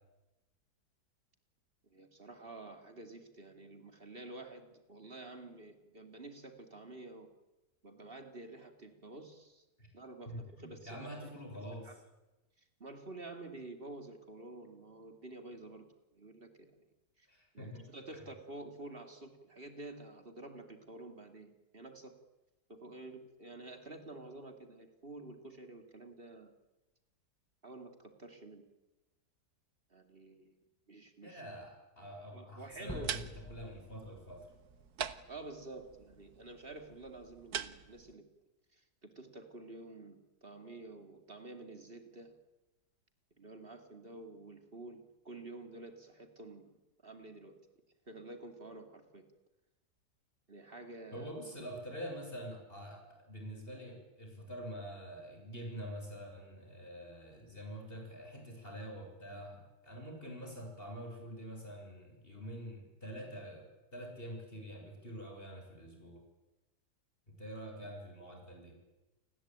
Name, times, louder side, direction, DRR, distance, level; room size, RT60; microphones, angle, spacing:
voice 1, 1.8-7.3 7.8-9.6 9.9-12.0 12.6-15.9 16.1-16.7 17.2-17.3 17.5-22.1 22.7-26.5 27.6-28.7 29.9-30.6 30.9-31.4 32.3-33.2 35.3-38.3 38.7-42.4 43.4-46.7 47.0-47.6 48.1-49.3 50.5-51.3, right 2 dB, 35° right, 6 dB, 3.1 m, -50 dB
voice 2, 10.3-11.9 17.3-17.8 31.2-33.2 33.5-34.5 51.1-63.7 63.9-66.2 67.3-68.8, equal, 35° left, 2 dB, 7.0 m, -46 dB
sound 1, 32.7-38.1, right 8 dB, 65° right, 1.7 m, -45 dB
sound 2, 32.9-35.4, left 1 dB, 5° left, 1.6 m, -49 dB
29.5 x 20.5 x 9.1 m, 1.0 s
omnidirectional pair, 1.8 m